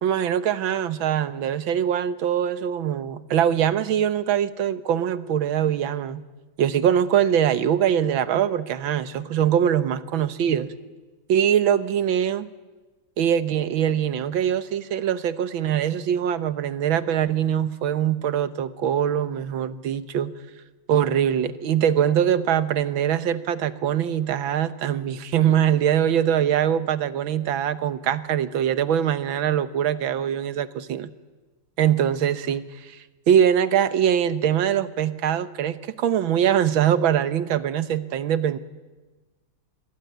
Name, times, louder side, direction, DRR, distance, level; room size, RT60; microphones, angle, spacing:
voice 1, 0.0-6.2 6.6-10.7 11.3-12.5 13.2-20.3 20.9-31.1 31.8-33.0 33.3-38.6, right 9 dB, 85° right, 14 dB, 1.9 m, -23 dB
25.5 x 21.5 x 9.3 m, 1.2 s
omnidirectional pair, 2.1 m